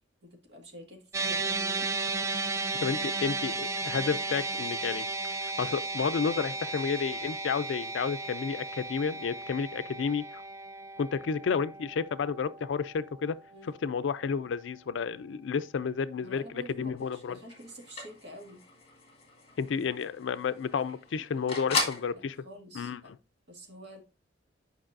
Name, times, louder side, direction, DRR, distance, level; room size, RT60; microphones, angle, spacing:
voice 1, 0.2-1.9 13.5-13.7 16.2-18.6 21.6-21.8 22.1-23.1 23.5-24.0, equal, 65° right, 1.8 m, -48 dB
sound 1, 1.1-13.6, right 3 dB, 15° right, 0.4 m, -34 dB
voice 2, 2.8-5.1 5.6-10.4 11.0-13.4 13.7-17.4 19.6-22.4 22.7-23.0, left 6 dB, 80° left, 0.4 m, -31 dB
sound 2, 17.0-22.1, left 4 dB, 30° left, 1.9 m, -37 dB
8.7 x 5.3 x 2.6 m
head